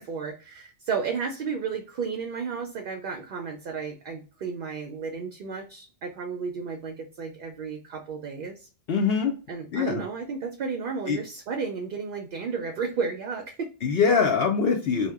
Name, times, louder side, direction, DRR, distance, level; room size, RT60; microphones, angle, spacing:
voice 1, 0.1-8.7 9.5-13.7, right 5 dB, 60° right, 3 dB, 0.6 m, -33 dB
voice 2, 8.9-9.3 9.7-10.0 11.1-11.2 13.8-15.1, left 5 dB, 65° left, 2 dB, 0.7 m, -23 dB
2.7 x 2.1 x 3.4 m, 0.35 s
omnidirectional pair, 1.2 m